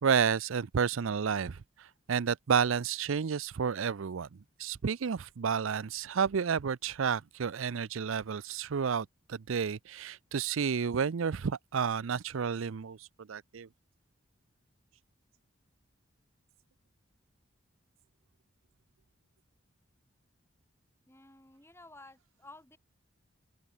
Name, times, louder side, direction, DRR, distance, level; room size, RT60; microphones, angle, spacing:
voice 1, 0.0-13.7, right 6 dB, 80° right, 0.5 m, -31 dB
voice 2, 21.1-22.8, left 2 dB, 10° left, 4.5 m, -53 dB
open air
head